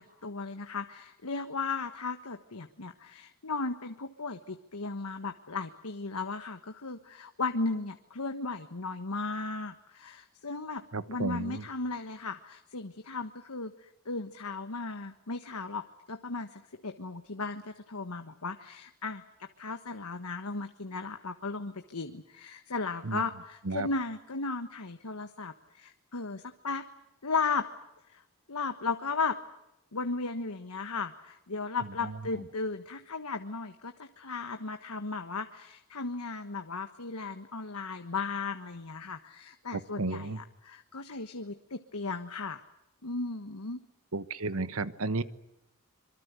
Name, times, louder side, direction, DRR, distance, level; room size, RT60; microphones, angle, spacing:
voice 1, 0.0-10.8 11.1-26.8 27.2-27.7 28.1-28.2 28.5-29.4 29.9-42.6 43.0-43.8, left 4 dB, 80° left, 7 dB, 1.4 m, -36 dB
voice 2, 10.9-11.6 23.0-23.2 23.6-23.9 32.0-32.1 39.7-40.4 44.1-45.2, right 3 dB, 65° right, 14 dB, 1.3 m, -33 dB
26.0 x 24.0 x 8.2 m, 0.89 s
head